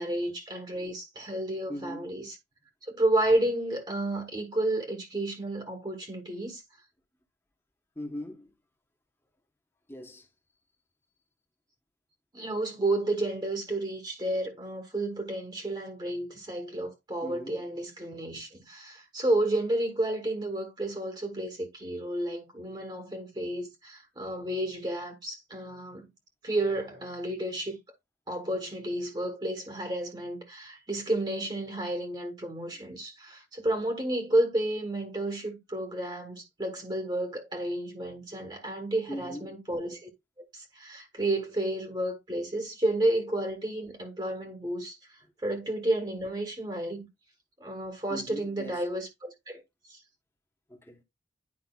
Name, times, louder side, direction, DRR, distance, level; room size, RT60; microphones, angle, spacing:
voice 1, 0.0-2.3 2.8-6.6 12.3-26.1 26.4-27.8 28.3-40.1 40.5-45.0 45.4-47.1 47.6-49.6 49.9-50.0, right 1 dB, 25° right, 1.3 m, -31 dB
voice 2, 1.7-2.1 7.9-8.5 9.9-10.3 17.2-17.6 32.7-32.9 39.1-39.6 48.1-48.9 50.7-51.0, equal, 15° left, 1.1 m, -40 dB
9.9 x 5.0 x 2.3 m
head